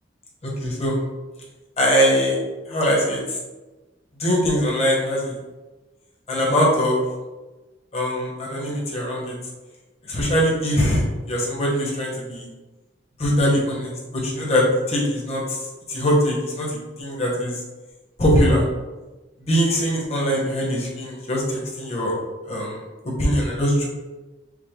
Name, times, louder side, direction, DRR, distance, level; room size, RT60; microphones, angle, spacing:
voice 1, 0.4-1.0 1.8-2.4 2.7-3.2 4.2-5.3 6.3-7.0 7.9-9.3 10.1-12.5 13.2-15.6 15.9-17.6 18.2-18.6 19.4-22.1 22.5-22.8 23.2-23.9, equal, 35° left, -4 dB, 1.2 m, -22 dB
5.0 x 2.4 x 3.7 m, 1.2 s
head